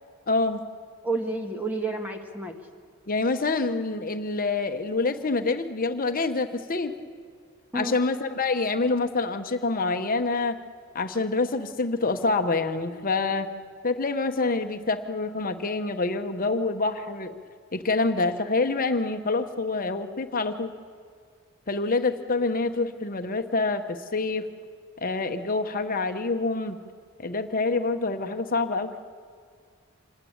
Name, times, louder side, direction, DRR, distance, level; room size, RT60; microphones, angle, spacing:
voice 1, 0.3-0.6 3.1-6.9 7.7-10.6 10.9-13.5 13.8-17.3 17.7-20.8 21.7-24.5 25.0-26.8 27.2-28.9, left 3 dB, 40° left, 7 dB, 1.1 m, -26 dB
voice 2, 1.0-2.5 7.7-7.9, right 2 dB, 10° right, 3 dB, 1.6 m, -30 dB
26.0 x 19.5 x 8.8 m, 2.1 s
head